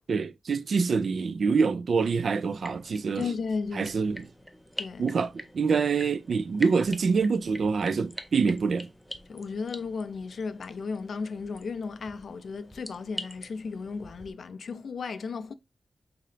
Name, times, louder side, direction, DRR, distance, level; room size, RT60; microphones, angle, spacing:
voice 1, 0.1-3.2 3.8-4.3 5.0-8.9, right 5 dB, 65° right, 0.3 m, -26 dB
sound 1, 2.5-14.3, equal, ahead, 0.5 m, -45 dB
voice 2, 3.2-3.9 4.8-5.1 9.3-15.5, left 5 dB, 65° left, 0.4 m, -34 dB
3.8 x 2.8 x 3.2 m
wide cardioid pair, 125°, 0 cm